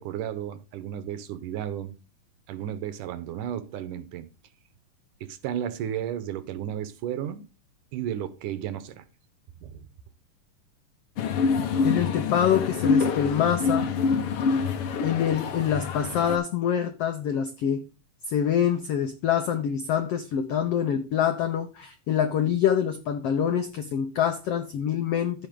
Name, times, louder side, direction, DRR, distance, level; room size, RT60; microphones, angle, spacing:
voice 1, 0.0-2.0 2.5-4.3 5.2-7.5 7.9-9.0 9.6-9.9, right 10 dB, 75° right, 2.3 m, -33 dB
sound 1, 11.2-16.4, left 5 dB, 70° left, 1.4 m, -26 dB
voice 2, 11.8-13.9 15.0-17.8 18.3-25.5, left 9 dB, 85° left, 1.3 m, -25 dB
14.5 x 5.1 x 3.6 m
omnidirectional pair, 3.9 m